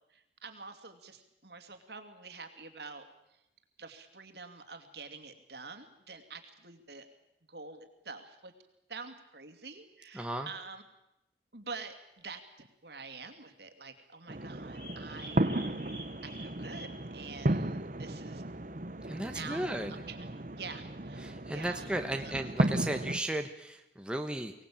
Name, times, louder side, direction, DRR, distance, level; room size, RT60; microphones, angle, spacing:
voice 1, 0.1-3.1 3.8-7.1 7.5-8.5 8.9-10.8 11.5-15.9 16.2-18.4 19.3-21.9 22.2-22.5, right 4 dB, 70° right, 6 dB, 2.6 m, -47 dB
voice 2, 10.1-10.5 19.1-19.9 21.2-24.5, right 1 dB, 5° right, 5 dB, 1.1 m, -35 dB
sound 1, 14.3-23.2, right 1 dB, 45° right, 1.0 m, -34 dB
sound 2, 14.7-17.1 17.6-17.7, equal, 10° left, 4.0 m, -49 dB
24.0 x 18.5 x 8.7 m, 0.86 s
head